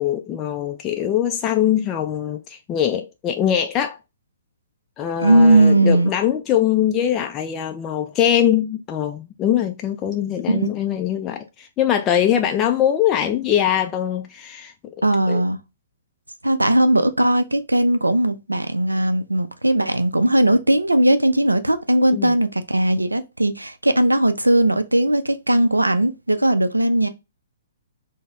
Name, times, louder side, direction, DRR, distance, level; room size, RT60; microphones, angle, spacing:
voice 1, 0.0-4.0 5.0-14.7 15.3-15.4 22.1-22.3, left 10 dB, 25° left, 0.3 m, -22 dB
voice 2, 5.2-6.1 10.5-10.7 15.0-15.6 16.4-27.1, right 1 dB, 85° right, 0.4 m, -18 dB
3.9 x 2.0 x 3.5 m
figure-of-eight pair, 120°, 0 cm